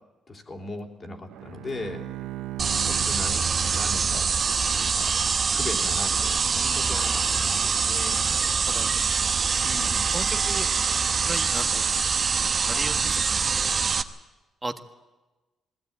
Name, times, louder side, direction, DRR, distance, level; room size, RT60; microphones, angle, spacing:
voice 1, 0.3-2.0 2.9-4.3 4.6-5.1 5.5-7.2 7.6-8.2 9.6-10.1, left 2 dB, 35° left, 2 dB, 3.4 m, -38 dB
Bowed string instrument, 1.3-4.8, right 16 dB, 90° right, 0.7 m, -38 dB
sound 1, 2.6-14.0, right 5 dB, 45° right, 1.1 m, -24 dB
voice 2, 10.1-10.7 11.3-11.9 12.4-13.7 14.6-14.8, right 2 dB, 15° right, 6 dB, 1.6 m, -35 dB
20.5 x 16.0 x 8.7 m, 1.2 s
cardioid pair, 90°, 0 cm